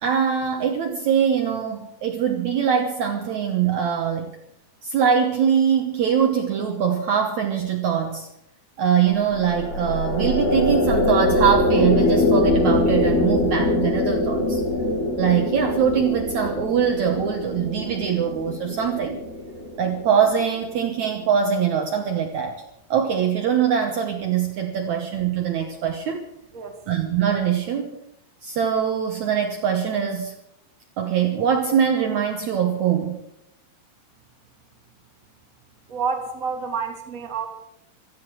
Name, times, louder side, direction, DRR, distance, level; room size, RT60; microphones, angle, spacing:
voice 1, 0.0-4.3 4.8-8.3 8.8-14.6 15.2-19.2 19.8-22.5 22.9-26.2 26.9-27.9 28.4-30.3 31.0-33.2, right 8 dB, 75° right, 3 dB, 1.7 m, -22 dB
sound 1, 9.1-20.6, left 1 dB, 60° left, 4.5 m, -23 dB
voice 2, 35.9-37.5, right 5 dB, 30° right, 3 dB, 1.7 m, -28 dB
16.0 x 13.5 x 6.4 m, 0.80 s
omnidirectional pair, 5.2 m